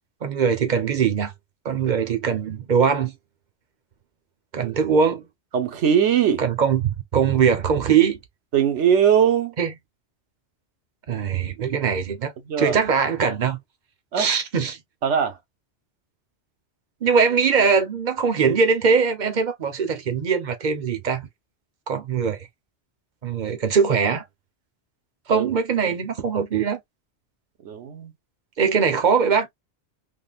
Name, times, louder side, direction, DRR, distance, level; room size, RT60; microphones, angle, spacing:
voice 1, 0.2-1.3 1.6-3.1 4.5-5.3 6.4-8.2 9.6-9.7 11.1-12.3 12.6-13.6 14.2-14.8 17.0-21.3 21.9-22.5 23.2-24.2 25.3-26.8 28.6-29.5, right 6 dB, 45° right, 0.8 m, -21 dB
voice 2, 5.5-6.4 8.5-9.5 12.5-12.8 14.1-14.3 15.0-15.4 25.3-25.5 27.6-28.1, right 8 dB, 90° right, 1.1 m, -20 dB
3.6 x 2.2 x 2.3 m
omnidirectional pair, 1.2 m